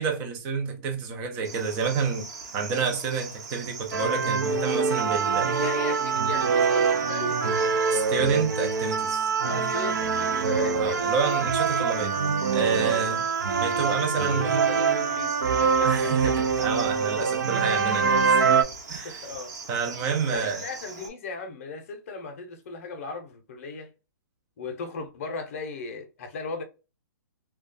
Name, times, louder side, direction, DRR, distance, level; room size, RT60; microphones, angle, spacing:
voice 1, 0.0-2.3 2.5-5.5 7.9-9.3 10.7-12.1 12.5-13.2 13.6-14.7 15.8-18.2 18.9-19.2 19.7-20.6, right 5 dB, 15° right, 0.3 m, -28 dB
Cricket, 1.4-21.1, right 4 dB, 55° right, 0.9 m, -41 dB
sound 1, 3.9-18.6, right 5 dB, 70° right, 0.5 m, -24 dB
voice 2, 5.3-7.7 9.4-11.4 12.6-13.1 14.1-16.3 18.0-18.3 19.0-19.5 20.2-23.9 24.6-26.6, left 4 dB, 45° left, 0.6 m, -37 dB
2.3 x 2.2 x 2.5 m
hypercardioid pair, 170°, 11 cm